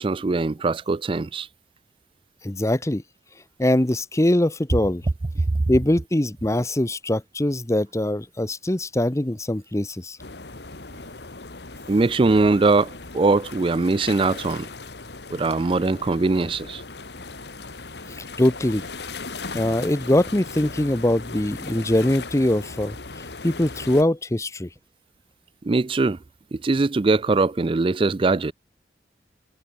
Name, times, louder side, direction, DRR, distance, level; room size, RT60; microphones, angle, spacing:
voice 1, 0.0-1.5 11.9-14.7 15.3-16.8 25.6-26.2 26.5-28.5, right 3 dB, 30° right, 0.4 m, -21 dB
voice 2, 2.4-3.0 3.6-5.0 5.7-10.2 18.1-18.8 19.5-24.7, left 1 dB, 15° left, 0.9 m, -22 dB
sound 1, 10.2-24.0, left 3 dB, 70° left, 2.0 m, -38 dB
head